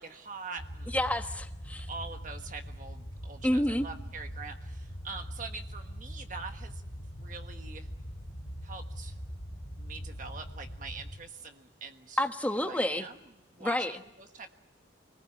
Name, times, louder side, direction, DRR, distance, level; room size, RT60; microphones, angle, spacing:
voice 1, 0.0-1.0 1.7-6.8 7.2-7.9 8.6-9.2 9.8-12.2 12.5-13.2 13.5-14.5, right 4 dB, 45° right, 5 dB, 1.4 m, -44 dB
sound 1, 0.6-11.2, equal, 35° left, 3.2 m, -42 dB
voice 2, 0.9-1.9 3.4-3.9 12.2-13.0 13.6-13.9, left 1 dB, 10° left, 6 dB, 1.3 m, -29 dB
26.5 x 20.5 x 8.9 m, 0.96 s
head